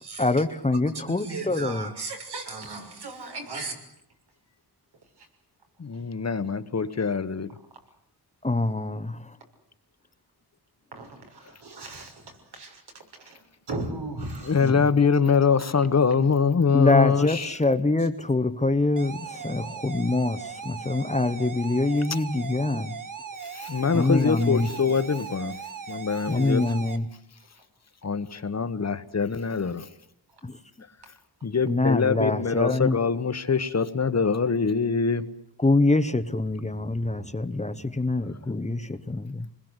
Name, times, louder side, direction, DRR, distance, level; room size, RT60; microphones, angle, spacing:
voice 1, 0.2-1.9 8.4-9.4 14.6-14.9 16.7-23.0 23.9-24.7 26.3-27.1 30.4-30.6 31.6-33.0 35.6-39.5, left 2 dB, 15° left, 1.0 m, -25 dB
voice 2, 1.1-3.8 5.2-5.3 10.9-12.8 13.1-13.4 13.7-14.7, right 3 dB, 80° right, 6.6 m, -36 dB
voice 3, 5.8-7.5 14.5-17.5 23.5-25.6 25.9-26.6 28.0-29.9 31.4-35.2, left 5 dB, 40° left, 1.3 m, -24 dB
sound 1, 19.0-27.0, right 6 dB, 50° right, 1.7 m, -38 dB
28.0 x 21.0 x 8.2 m
wide cardioid pair, 135°, 40 cm